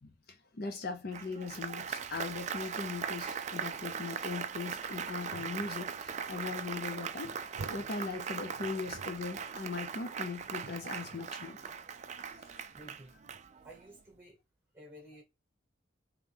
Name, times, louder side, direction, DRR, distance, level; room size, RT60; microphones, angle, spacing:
voice 1, 0.0-7.3 7.7-11.6 12.3-12.6, left 4 dB, 50° left, 0.6 m, -40 dB
Applause, 1.1-13.9, right 7 dB, 35° right, 0.3 m, -40 dB
sound 1, 5.3-6.8 7.2-9.5 10.4-11.3, right 3 dB, 80° right, 0.6 m, -50 dB
voice 2, 12.7-13.2 13.6-14.4 14.7-15.2, right 1 dB, 10° right, 1.5 m, -53 dB
3.8 x 3.1 x 3.4 m
head